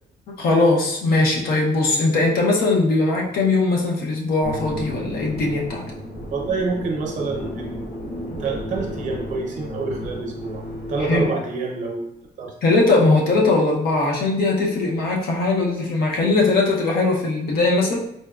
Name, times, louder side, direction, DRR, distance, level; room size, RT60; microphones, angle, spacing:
voice 1, 0.4-5.8 11.0-11.3 12.6-18.0, left 3 dB, 60° left, -1 dB, 0.7 m, -20 dB
sound 1, 4.4-11.3, equal, 85° left, 1.1 m, -33 dB
voice 2, 6.3-10.6 10.9-12.1 12.4-12.5, right 3 dB, 45° right, 0 dB, 0.7 m, -27 dB
4.1 x 2.2 x 2.3 m, 0.76 s
cardioid pair, 180°, 18 cm